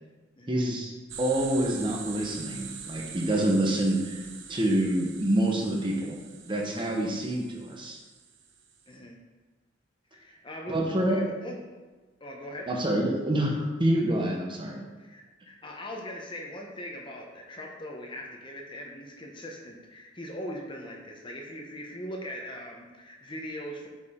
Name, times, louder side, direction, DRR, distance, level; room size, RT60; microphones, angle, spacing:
voice 1, 0.5-0.9 1.2-4.2 4.5-6.2 6.4-8.0 10.7-11.2 12.7-14.8, right 1 dB, 25° right, 0 dB, 1.0 m, -27 dB
sound 1, 1.1-8.8, right 6 dB, 80° right, 0.8 m, -44 dB
voice 2, 8.9-9.2 10.1-11.6 12.2-12.7 15.0-23.9, equal, 25° left, 0 dB, 0.8 m, -40 dB
8.1 x 4.9 x 3.7 m, 1.2 s
head